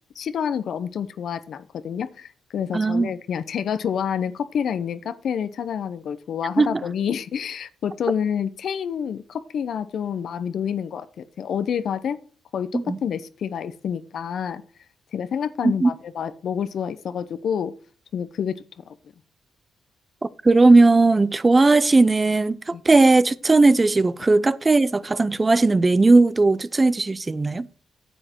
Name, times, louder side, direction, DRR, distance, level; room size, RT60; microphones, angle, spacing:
voice 1, 0.2-12.2 12.5-14.6 15.1-17.7 18.1-18.6 22.7-22.8, left 8 dB, 70° left, 0.8 m, -28 dB
voice 2, 2.7-3.1 6.6-6.9 12.7-13.0 15.8-15.9 20.4-27.7, right 3 dB, 30° right, 0.6 m, -17 dB
10.0 x 7.8 x 4.6 m
supercardioid pair, 55°, 0 cm